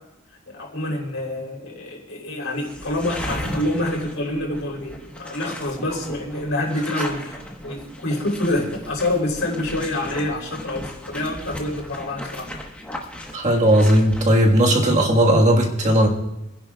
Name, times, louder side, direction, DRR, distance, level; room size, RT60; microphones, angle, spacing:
voice 1, 0.5-7.4 7.6-12.5, left 1 dB, 75° left, -1 dB, 3.5 m, -27 dB
sound 1, 2.5-14.2, left 1 dB, 5° left, 1.2 m, -36 dB
voice 2, 13.3-16.1, right 1 dB, 35° right, 0 dB, 1.6 m, -16 dB
27.0 x 10.0 x 2.4 m, 0.91 s
head